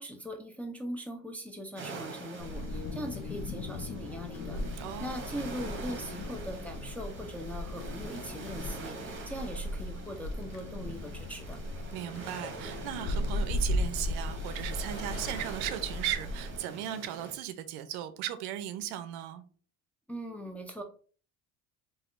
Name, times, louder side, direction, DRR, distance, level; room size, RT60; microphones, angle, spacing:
voice 1, 0.0-4.6 5.0-11.6 20.1-20.8, equal, 5° left, 0.4 m, -40 dB
sound 1, 1.8-17.4, right 4 dB, 25° right, 0.9 m, -45 dB
Wind, 2.4-16.6, left 1 dB, 50° left, 0.6 m, -37 dB
voice 2, 4.8-5.2 11.9-19.4, right 11 dB, 70° right, 0.5 m, -37 dB
sound 2, 14.4-17.0, left 3 dB, 65° left, 1.3 m, -53 dB
3.3 x 2.4 x 2.4 m
supercardioid pair, 80°, 44 cm